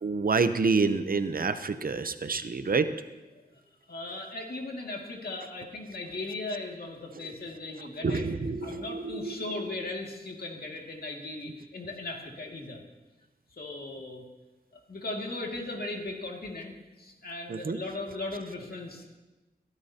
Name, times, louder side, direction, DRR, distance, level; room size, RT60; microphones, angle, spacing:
voice 1, 0.0-2.9 8.0-9.3 17.5-17.8, right 4 dB, 60° right, 11 dB, 0.7 m, -28 dB
voice 2, 3.9-8.3 8.6-12.8 13.6-14.2 14.9-19.1, left 2 dB, 65° left, 1 dB, 2.1 m, -37 dB
22.5 x 12.5 x 2.8 m, 1.1 s
wide cardioid pair, 75°, 17 cm